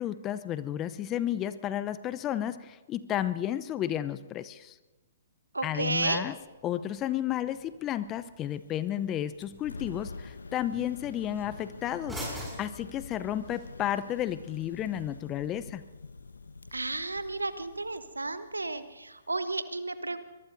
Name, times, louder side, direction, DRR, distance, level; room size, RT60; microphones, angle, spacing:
voice 1, 0.0-4.7 5.6-6.3 6.6-15.8, left 11 dB, 25° left, 14 dB, 0.6 m, -32 dB
voice 2, 5.5-6.3 16.7-20.2, right 2 dB, 85° right, 12 dB, 1.1 m, -32 dB
sound 1, 5.6-13.6, equal, ahead, 6.3 m, -47 dB
sound 2, 9.4-19.4, left 3 dB, 75° left, 1.2 m, -46 dB
24.0 x 22.0 x 2.7 m, 1.2 s
figure-of-eight pair, 125°, 0 cm